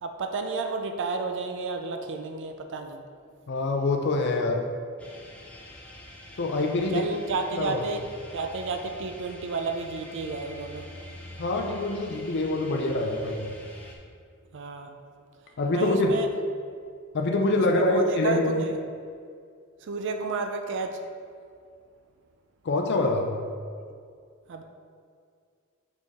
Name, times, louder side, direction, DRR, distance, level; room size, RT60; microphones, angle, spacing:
voice 1, 0.0-3.0 6.9-8.0 8.3-10.9 14.5-14.9 15.7-16.3 17.6-18.8 19.8-21.0 24.5-24.6, right 4 dB, 60° right, 6 dB, 0.4 m, -31 dB
voice 2, 3.5-4.6 6.4-7.1 7.6-7.8 11.4-13.4 15.6-16.1 17.1-18.6 22.6-23.3, left 2 dB, 55° left, 2 dB, 0.5 m, -25 dB
sound 1, 5.0-14.0, left 1 dB, 5° left, 0.8 m, -46 dB
5.4 x 5.2 x 3.6 m, 2.2 s
head